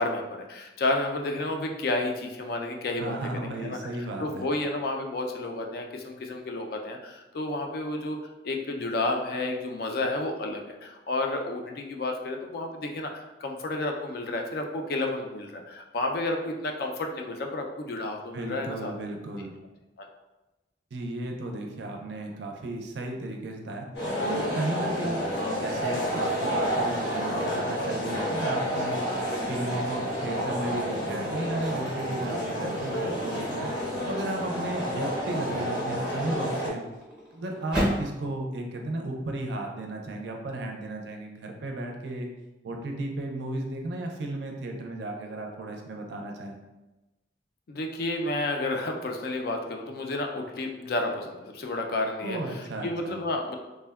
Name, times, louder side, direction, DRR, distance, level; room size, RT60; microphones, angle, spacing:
voice 1, 0.0-3.8 4.2-8.2 8.4-18.9 20.0-20.1 47.7-53.6, left 2 dB, 55° left, 2 dB, 0.3 m, -31 dB
voice 2, 3.0-4.5 18.3-19.5 20.9-23.9 24.2-25.2 25.5-29.0 29.5-33.7 34.1-36.9 37.3-42.3 42.6-46.6 52.2-53.2, right 2 dB, 70° right, 2 dB, 0.4 m, -34 dB
sound 1, 23.9-36.7, equal, 80° left, 0.8 m, -30 dB
sound 2, 29.2-29.6 30.1-38.2, equal, 5° right, 0.6 m, -37 dB
3.3 x 2.1 x 2.3 m, 1.1 s
head